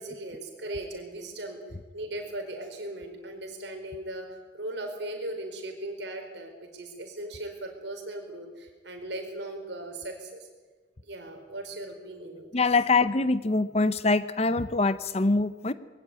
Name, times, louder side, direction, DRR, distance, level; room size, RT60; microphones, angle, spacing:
voice 1, 0.0-1.6 1.9-4.3 4.5-10.4 11.0-12.5, right 1 dB, 65° right, 4 dB, 4.6 m, -38 dB
voice 2, 12.5-15.7, left 3 dB, 35° left, 14 dB, 0.7 m, -24 dB
21.5 x 16.0 x 9.6 m, 1.3 s
head